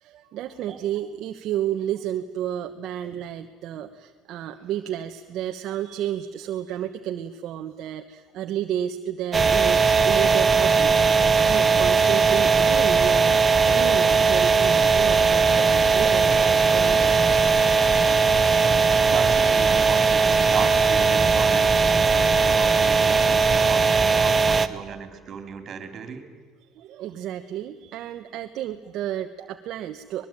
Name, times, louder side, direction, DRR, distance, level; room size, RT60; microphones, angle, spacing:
voice 1, 0.0-17.1 26.8-30.2, right 11 dB, 50° right, 5 dB, 1.1 m, -31 dB
sound 1, 9.3-24.7, right 5 dB, 15° right, 1.0 m, -19 dB
voice 2, 19.0-26.3, right 6 dB, 35° right, 8 dB, 3.6 m, -35 dB
25.0 x 21.0 x 9.1 m, 1.4 s
cardioid pair, 155°, 0 cm